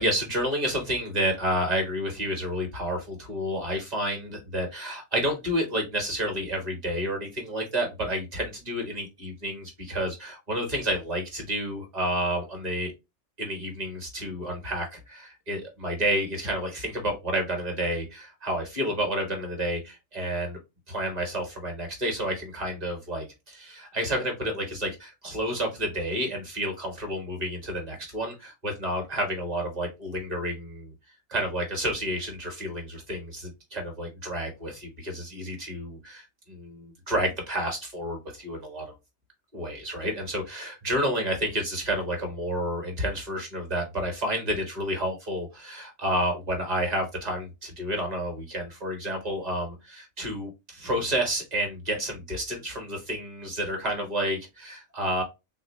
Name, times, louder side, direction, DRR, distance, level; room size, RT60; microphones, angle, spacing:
voice 1, 0.0-12.9 13.4-20.6 20.9-30.9 31.3-38.8 39.5-55.2, equal, 30° right, 3 dB, 1.2 m, -30 dB
3.5 x 2.7 x 3.0 m, 0.24 s
omnidirectional pair, 1.4 m